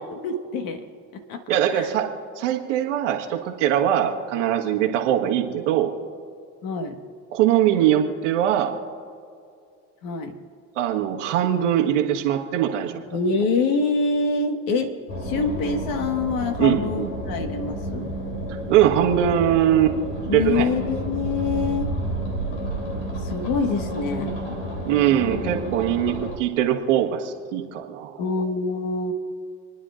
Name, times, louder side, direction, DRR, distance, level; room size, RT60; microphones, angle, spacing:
voice 1, 0.1-0.8 1.1-1.9 6.6-7.0 10.0-10.4 13.1-14.9 15.2-18.1 20.3-21.9 23.2-24.3 28.2-29.1, left 4 dB, 65° left, 6 dB, 1.6 m, -25 dB
voice 2, 1.5-2.1 2.4-5.9 7.3-8.8 10.7-13.0 16.6-17.1 18.7-20.0 20.3-20.7 24.8-28.2, right 11 dB, 90° right, 2 dB, 1.5 m, -21 dB
sound 1, 15.1-26.4, right 1 dB, 90° left, 3.2 m, -30 dB
28.5 x 10.0 x 2.5 m, 2.3 s
supercardioid pair, 90°, 36 cm